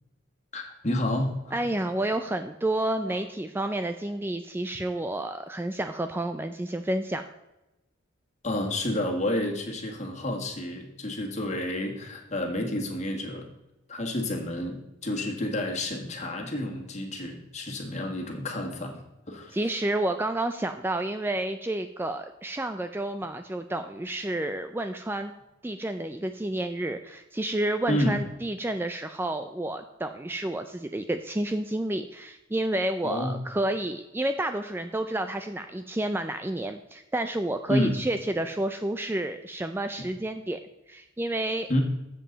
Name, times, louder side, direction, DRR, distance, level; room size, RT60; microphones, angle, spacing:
voice 1, 0.5-1.7 8.4-13.5 13.9-19.0 19.3-19.8 27.9-28.2 33.0-33.4 37.7-38.0 41.7-41.8, left 1 dB, 35° left, 2 dB, 1.8 m, -30 dB
voice 2, 1.5-7.2 19.5-25.3 25.6-40.6 40.9-41.7, right 1 dB, 10° right, 8 dB, 0.3 m, -30 dB
13.0 x 7.6 x 4.0 m, 0.97 s
head